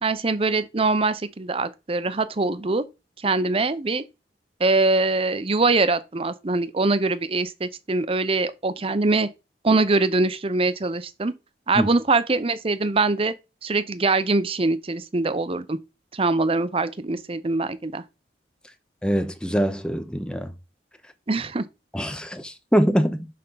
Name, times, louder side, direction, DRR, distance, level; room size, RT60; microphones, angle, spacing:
voice 1, 0.0-2.8 3.2-4.0 4.6-9.3 9.6-11.3 11.7-13.3 13.6-15.8 16.1-18.0 21.3-21.6, right 3 dB, 30° right, 0.7 m, -23 dB
voice 2, 19.0-20.5 21.9-23.3, equal, 5° left, 0.8 m, -23 dB
6.8 x 3.8 x 5.5 m
head